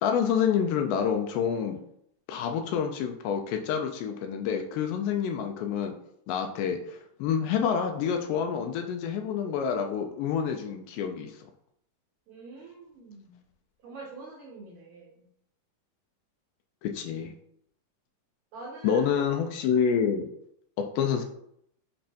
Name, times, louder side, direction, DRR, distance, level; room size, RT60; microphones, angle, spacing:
voice 1, 0.0-1.8 2.3-5.9 6.3-11.3 16.8-17.3 18.8-20.3 21.0-21.2, left 7 dB, 80° left, 4 dB, 2.1 m, -28 dB
voice 2, 12.3-13.4 13.8-15.3 18.5-19.1, right 3 dB, 80° right, -4 dB, 1.6 m, -45 dB
5.5 x 3.1 x 2.6 m, 0.71 s
omnidirectional pair, 4.1 m